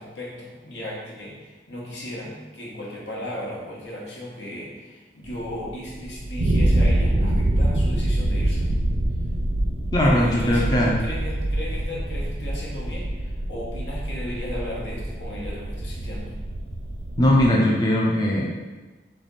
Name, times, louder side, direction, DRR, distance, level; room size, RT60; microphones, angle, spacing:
voice 1, 0.0-8.7 10.0-16.4, left 1 dB, 80° left, -4 dB, 1.2 m, -36 dB
sound 1, 5.3-17.5, right 1 dB, 65° right, 0.5 m, -25 dB
voice 2, 9.9-11.0 17.2-18.5, left 1 dB, 20° left, -3 dB, 0.4 m, -19 dB
3.5 x 3.3 x 4.1 m, 1.2 s
head